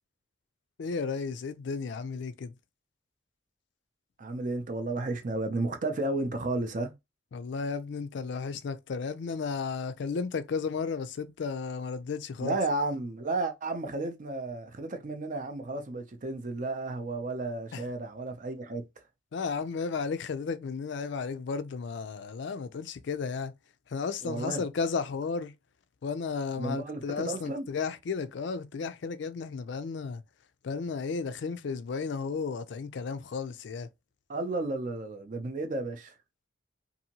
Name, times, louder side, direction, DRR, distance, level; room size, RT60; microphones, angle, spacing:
voice 1, 0.8-2.5 7.3-12.6 17.7-17.8 19.3-23.5 23.9-25.5 26.0-30.2 30.6-33.9, left 5 dB, 65° left, 0.4 m, -33 dB
voice 2, 4.2-6.9 12.4-18.9 24.2-24.6 26.6-27.7 34.3-36.1, right 2 dB, 40° right, 0.5 m, -33 dB
2.7 x 2.6 x 2.8 m
head